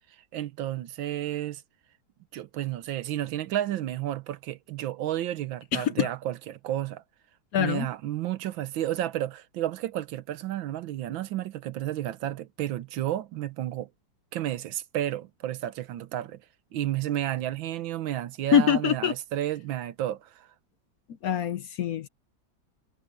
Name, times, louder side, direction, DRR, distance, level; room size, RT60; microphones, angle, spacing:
voice 1, 0.3-1.6 2.3-7.0 7.6-13.9 14.3-16.4 16.7-20.5, right 12 dB, 85° right, 1.6 m, -31 dB
voice 2, 5.7-6.1 7.5-7.9 18.5-19.1 21.2-22.1, left 9 dB, 60° left, 1.0 m, -24 dB
omnidirectional pair, 2.1 m